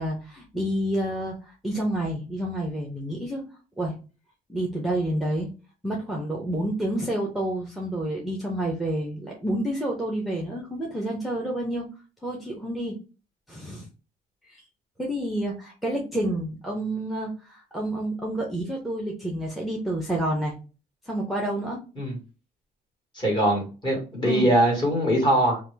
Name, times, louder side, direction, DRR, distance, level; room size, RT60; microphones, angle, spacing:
voice 1, 0.0-3.5 3.8-4.0 4.5-5.5 5.8-11.8 12.2-13.0 13.5-13.9 14.5-14.6 15.0-20.5 21.0-21.8 24.2-24.5, right 1 dB, ahead, -1 dB, 0.7 m, -29 dB
voice 2, 23.1-25.6, right 1 dB, 25° left, -1 dB, 1.7 m, -22 dB
2.9 x 2.2 x 3.3 m, 0.33 s
cardioid pair, 110°, 17 cm